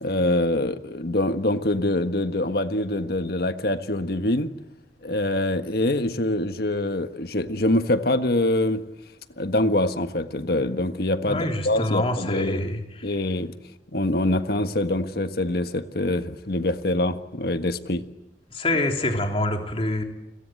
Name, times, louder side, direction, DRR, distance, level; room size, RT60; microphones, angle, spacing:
voice 1, 0.0-4.5 5.0-8.8 9.4-12.6 13.0-13.5 13.9-18.0, left 1 dB, 60° left, 9 dB, 1.6 m, -24 dB
voice 2, 11.2-13.2 18.5-20.0, left 1 dB, 35° left, 3 dB, 3.4 m, -26 dB
30.0 x 22.0 x 7.8 m, 0.98 s
head